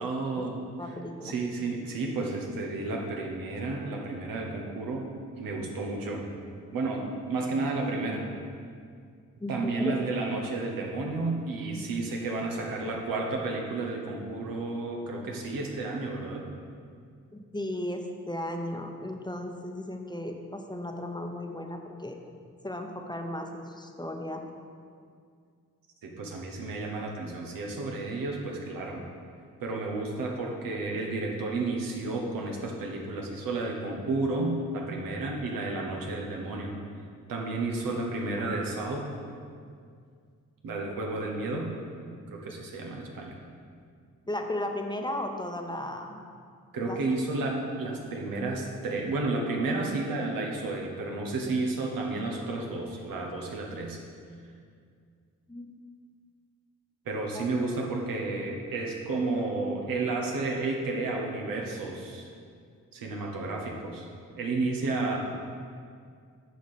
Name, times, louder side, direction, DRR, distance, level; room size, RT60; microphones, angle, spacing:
voice 1, 0.0-0.6 1.2-5.1 5.4-6.2 6.7-8.3 9.5-16.5 26.0-29.1 29.6-36.8 37.3-39.1 40.6-41.7 42.3-43.4 46.7-54.0 57.0-62.3 62.9-64.1 64.4-65.2, right 3 dB, 80° right, 0 dB, 1.0 m, -32 dB
voice 2, 0.8-1.3 9.4-10.0 17.3-22.2 22.6-24.5 44.3-46.2 46.8-47.0 55.5-55.7 57.3-57.5, left 1 dB, 15° left, 3 dB, 0.8 m, -35 dB
8.2 x 5.0 x 4.2 m, 2.2 s
supercardioid pair, 45°, 34 cm